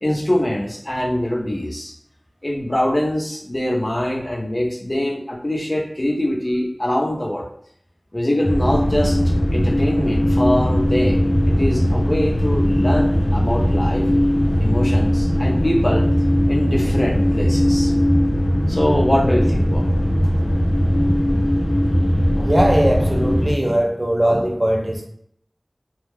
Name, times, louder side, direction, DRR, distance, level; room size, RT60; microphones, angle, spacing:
voice 1, 0.0-1.9 2.4-7.4 8.1-14.0 14.6-16.1 16.5-17.9 18.7-19.9, left 1 dB, 35° left, -1 dB, 0.6 m, -23 dB
sound 1, 8.4-23.5, equal, 85° left, 0.5 m, -19 dB
voice 2, 22.4-25.1, right 1 dB, 35° right, 1 dB, 0.5 m, -20 dB
2.2 x 2.1 x 3.2 m, 0.66 s
wide cardioid pair, 45°, 0 cm